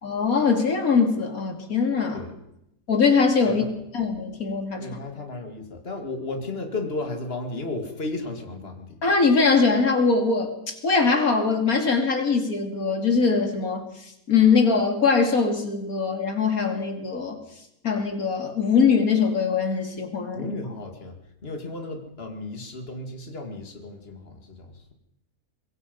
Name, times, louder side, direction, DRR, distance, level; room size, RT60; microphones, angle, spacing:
voice 1, 0.0-2.2 2.9-3.7 3.9-5.0 9.0-13.9 14.3-17.4 17.8-20.5, left 5 dB, 80° left, 4 dB, 3.2 m, -22 dB
voice 2, 4.7-9.0 20.3-21.1 21.4-24.9, left 2 dB, 45° left, 4 dB, 2.8 m, -34 dB
25.0 x 21.5 x 5.5 m, 0.81 s
omnidirectional pair, 1.5 m